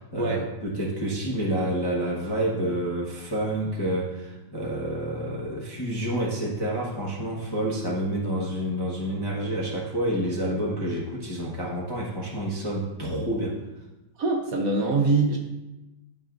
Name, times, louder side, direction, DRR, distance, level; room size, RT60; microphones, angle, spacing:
voice 1, 0.0-13.6, right 1 dB, 20° left, -5 dB, 0.6 m, -28 dB
voice 2, 14.2-15.4, right 3 dB, 60° right, 1 dB, 1.0 m, -23 dB
11.5 x 4.8 x 2.5 m, 1.0 s
omnidirectional pair, 2.2 m